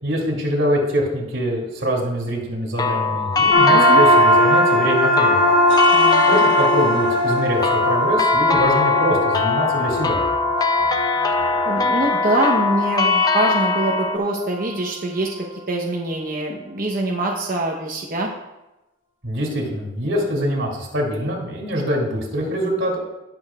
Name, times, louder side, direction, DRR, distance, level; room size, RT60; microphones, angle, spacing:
voice 1, 0.0-5.5 6.3-10.2 19.2-23.0, equal, 85° right, -1 dB, 3.0 m, -24 dB
sound 1, 2.8-14.2, left 4 dB, 20° left, 0.4 m, -21 dB
sound 2, 3.5-14.9, equal, 85° left, 1.3 m, -20 dB
Wind instrument woodwind instrument, 3.7-7.6, right 2 dB, ahead, 1.9 m, -34 dB
voice 2, 5.9-6.2 11.6-15.3 15.7-18.3, right 1 dB, 45° right, -2 dB, 1.1 m, -24 dB
18.5 x 6.7 x 2.5 m, 0.99 s
head